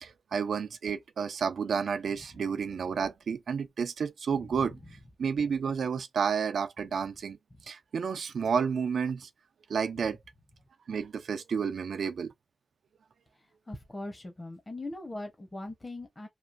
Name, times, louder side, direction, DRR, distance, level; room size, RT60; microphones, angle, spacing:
voice 1, 0.0-4.8 5.2-7.4 7.7-9.3 9.7-10.2 10.9-12.3, right 6 dB, 85° right, 0.4 m, -31 dB
voice 2, 13.7-16.3, left 2 dB, 30° left, 0.8 m, -40 dB
3.1 x 2.4 x 2.5 m
cardioid pair, 70°, 0 cm